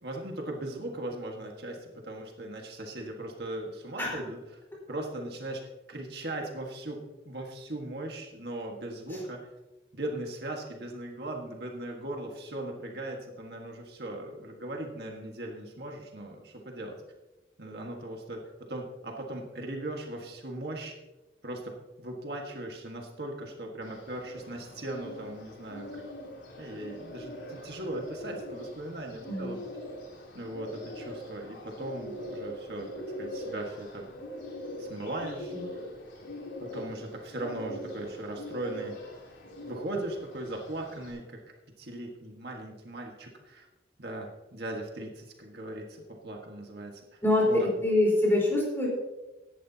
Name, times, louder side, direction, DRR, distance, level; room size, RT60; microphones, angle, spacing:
voice 1, 0.0-4.4 4.9-9.5 9.9-17.0 17.6-18.4 18.7-21.0 21.4-26.0 26.6-29.6 30.3-32.9 33.2-34.1 34.8-35.8 36.6-39.0 39.6-41.4 41.8-43.7 44.0-47.2 47.5-47.7, right 1 dB, 60° right, 0 dB, 1.6 m, -38 dB
Bird, 23.8-41.1, equal, 80° left, 3.5 m, -42 dB
voice 2, 29.2-29.6 35.5-35.6 47.2-47.5 47.8-48.9, left 2 dB, 10° left, -3 dB, 4.3 m, -25 dB
17.0 x 11.0 x 2.9 m, 1.1 s
head